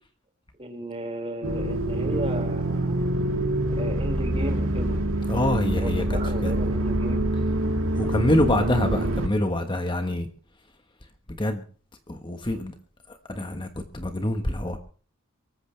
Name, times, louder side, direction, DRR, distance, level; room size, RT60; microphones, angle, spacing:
voice 1, 0.6-3.0 3.7-5.0 5.7-7.3, right 1 dB, 25° right, 2 dB, 5.2 m, -34 dB
sound 1, 1.4-9.3, right 1 dB, 70° right, 2.2 m, -25 dB
voice 2, 5.3-6.0 6.4-6.5 8.0-10.3 11.4-11.6 12.1-12.7 13.3-13.7 13.9-14.8, left 1 dB, 25° left, 6 dB, 1.3 m, -25 dB
24.0 x 14.5 x 3.3 m, 0.40 s
head